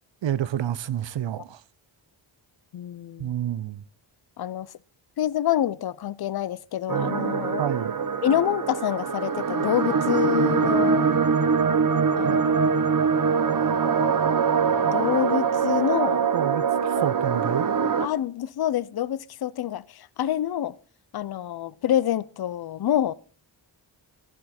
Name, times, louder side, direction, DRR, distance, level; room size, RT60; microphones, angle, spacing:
voice 1, 0.2-1.6 3.2-3.8 7.6-7.9 12.2-12.4 16.3-17.7, right 10 dB, 65° right, 0.7 m, -29 dB
voice 2, 2.7-3.4 4.4-4.7 5.2-7.6 8.2-11.1 12.2-12.7 14.9-16.3 17.0-17.1 18.0-20.8 21.1-23.1, left 11 dB, 50° left, 0.6 m, -27 dB
sound 1, 6.9-18.1, right 6 dB, 45° right, 0.9 m, -23 dB
13.0 x 11.0 x 4.2 m
wide cardioid pair, 95°, 47 cm